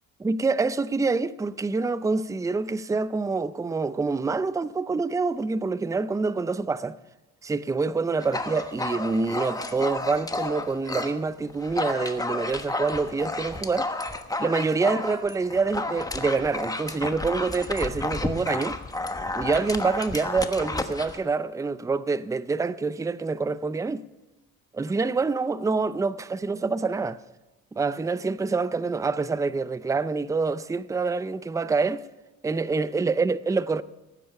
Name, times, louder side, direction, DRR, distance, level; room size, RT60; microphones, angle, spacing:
voice 1, 0.2-7.0 7.4-13.9 14.4-18.8 19.3-24.0 24.7-27.2 27.7-32.0 32.4-33.8, right 4 dB, 10° right, 0.4 m, -26 dB
Dog, 8.2-11.2 11.5-21.2, left 2 dB, 10° left, 1.2 m, -31 dB
18.0 x 9.4 x 5.8 m
cardioid pair, 90°, 30 cm